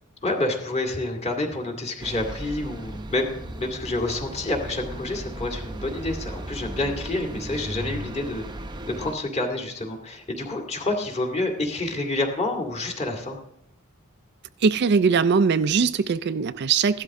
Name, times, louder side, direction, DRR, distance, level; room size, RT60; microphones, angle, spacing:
voice 1, 0.2-8.4 9.0-13.4, left 2 dB, 30° left, 2.2 m, -28 dB
sound 1, 2.0-9.1, right 1 dB, 20° right, 0.7 m, -36 dB
voice 2, 14.6-17.0, right 5 dB, 50° right, 0.4 m, -21 dB
16.0 x 12.0 x 3.6 m
head